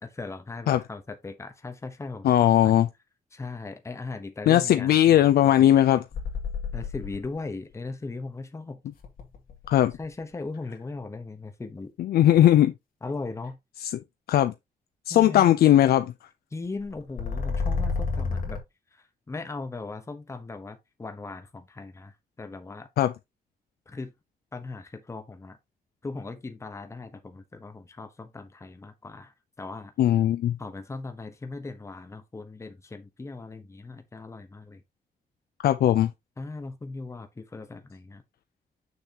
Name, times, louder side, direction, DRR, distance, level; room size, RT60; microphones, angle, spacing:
voice 1, 0.0-2.7 3.3-5.7 6.7-8.8 10.0-11.9 13.0-13.6 15.1-15.6 16.5-18.6 18.9-22.9 23.9-24.1 24.5-25.6 26.0-29.9 30.6-34.8 36.4-38.2, left 3 dB, 20° left, 1.0 m, -38 dB
voice 2, 2.2-2.9 4.5-6.0 9.7-9.9 12.0-12.7 13.8-14.0 14.3-14.5 15.1-16.1 23.0-23.1 30.0-30.6 35.6-36.1, left 12 dB, 90° left, 0.5 m, -19 dB
sound 1, 6.1-7.4 9.0-9.9 16.9-18.6, left 4 dB, 65° left, 2.4 m, -29 dB
6.8 x 6.2 x 2.9 m
wide cardioid pair, 145°, 16 cm